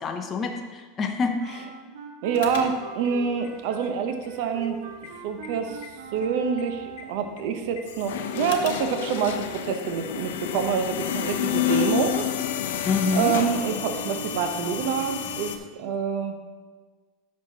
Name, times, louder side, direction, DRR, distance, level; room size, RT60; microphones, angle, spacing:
voice 1, 0.0-1.7 12.9-13.3, left 4 dB, 25° left, 3 dB, 0.6 m, -27 dB
Wind instrument woodwind instrument, 1.4-7.4, right 6 dB, 80° right, 1.1 m, -42 dB
voice 2, 2.2-4.8 5.2-5.8 6.1-12.3 13.1-16.4, right 6 dB, 65° right, 6 dB, 0.8 m, -27 dB
sound 1, 2.3-9.0, left 6 dB, 70° left, 1.1 m, -44 dB
sound 2, 7.9-15.6, left 10 dB, 85° left, 0.6 m, -29 dB
10.5 x 6.5 x 2.8 m, 1.4 s
supercardioid pair, 145°, 0 cm